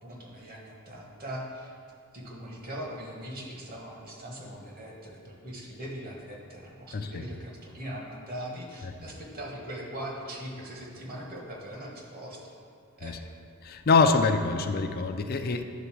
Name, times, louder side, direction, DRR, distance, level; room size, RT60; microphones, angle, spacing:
voice 1, 0.0-1.7 2.1-12.5 13.0-13.1, equal, 45° right, -1 dB, 1.4 m, -40 dB
voice 2, 6.9-7.2 13.0-13.2 13.6-15.6, left 4 dB, 45° left, 7 dB, 0.4 m, -24 dB
9.5 x 4.0 x 6.0 m, 2.4 s
head